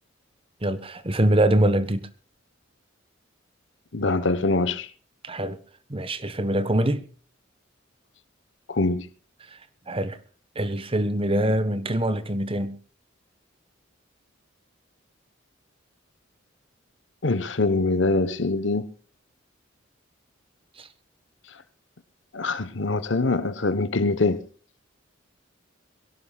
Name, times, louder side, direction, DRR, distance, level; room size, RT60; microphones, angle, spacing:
voice 1, 0.6-2.1 5.2-5.6 5.9-7.0 9.5-9.6 9.9-10.2 10.5-12.8 20.8-20.9, right 1 dB, 25° right, 1.2 m, -24 dB
voice 2, 3.9-4.9 8.7-9.1 17.2-18.9 22.3-24.5, left 3 dB, 60° left, 1.1 m, -24 dB
23.0 x 17.0 x 2.4 m
head